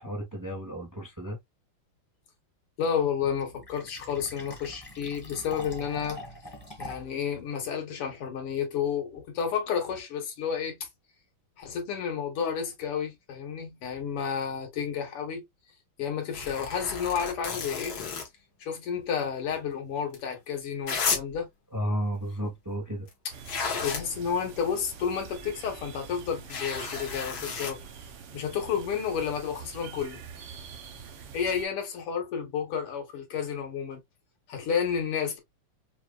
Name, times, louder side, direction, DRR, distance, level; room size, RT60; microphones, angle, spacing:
voice 1, 0.0-1.4 21.7-23.1, equal, 15° right, 0.7 m, -33 dB
voice 2, 2.8-6.2 6.8-10.8 11.6-15.4 16.0-18.0 18.6-21.5 23.8-27.8 28.3-30.2 31.3-34.0 34.5-35.4, left 7 dB, 90° left, 2.3 m, -31 dB
Fill (with liquid), 3.2-7.2, left 1 dB, 15° left, 1.2 m, -44 dB
Tearing Corduroy Shirt, 16.3-18.3 20.1-20.2 20.8-21.4 23.1-23.2 23.5-24.1 26.5-27.7 30.0-30.1, left 5 dB, 65° left, 2.0 m, -32 dB
sound 1, 23.3-31.6, right 6 dB, 85° right, 1.9 m, -45 dB
5.9 x 2.4 x 2.3 m
omnidirectional pair, 2.4 m